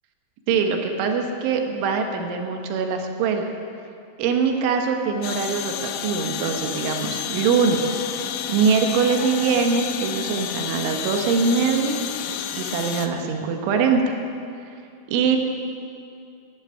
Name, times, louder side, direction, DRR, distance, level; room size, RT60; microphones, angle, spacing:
voice 1, 0.5-3.5 4.2-8.2 8.5-12.0 12.6-14.2 15.1-15.4, right 5 dB, 80° right, 4 dB, 3.7 m, -23 dB
sound 1, 5.2-13.1, left 9 dB, 90° left, 3.2 m, -30 dB
11.5 x 11.0 x 9.7 m, 2.5 s
omnidirectional pair, 5.5 m